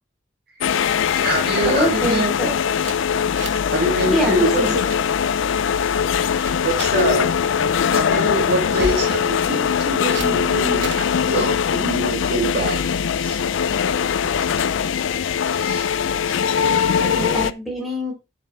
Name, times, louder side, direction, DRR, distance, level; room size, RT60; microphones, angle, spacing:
sound 1, 0.6-17.5, left 7 dB, 85° left, 0.4 m, -21 dB
voice 1, 1.1-2.3 3.7-4.8 6.6-7.3 7.6-11.0 11.2-13.4 14.4-14.6 15.5-15.9 16.5-16.8, right 1 dB, 55° right, 1 dB, 2.9 m, -25 dB
voice 2, 1.6-2.5 4.1-4.8 16.9-18.1, equal, ahead, -3 dB, 4.1 m, -24 dB
sound 2, 2.8-3.7 4.0-4.2 4.6-5.0 5.5-5.9 6.4-7.1 8.6-9.1 10.1-10.3 10.8-11.1, right 3 dB, 75° right, 1.2 m, -32 dB
7.5 x 7.5 x 3.6 m, 0.26 s
head